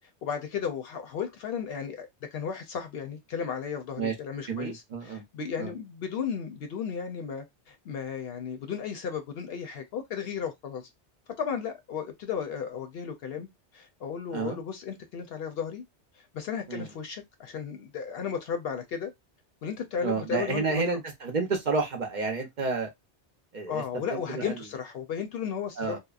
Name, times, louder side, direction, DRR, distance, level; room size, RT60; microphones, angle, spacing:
voice 1, 0.2-10.9 11.4-13.5 13.7-15.8 16.2-19.1 19.6-21.0 23.7-26.0, left 7 dB, 65° left, 0.7 m, -34 dB
voice 2, 4.5-5.2 5.6-5.7 14.3-14.6 16.7-16.9 20.0-22.9 23.5-23.8 24.1-24.5 25.8-26.0, right 4 dB, 50° right, 0.6 m, -30 dB
2.8 x 2.1 x 2.3 m
omnidirectional pair, 1.2 m